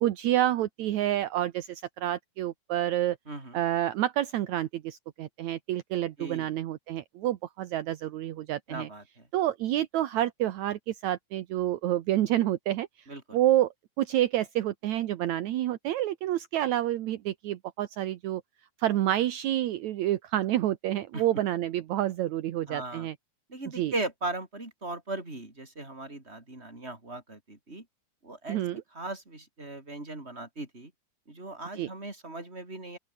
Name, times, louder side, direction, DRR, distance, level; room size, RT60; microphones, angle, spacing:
voice 1, 0.0-3.2 3.5-8.9 9.3-12.9 13.3-13.7 14.0-18.4 18.8-23.1 23.8-23.9 28.5-28.8 31.8-31.9, right 13 dB, 70° right, 1.9 m, -28 dB
voice 2, 3.3-3.6 6.2-6.5 8.7-9.3 13.1-13.4 21.1-21.4 22.7-23.1 23.5-27.9 28.2-30.9 31.3-33.0, right 2 dB, 15° right, 5.5 m, -38 dB
open air
omnidirectional pair, 4.4 m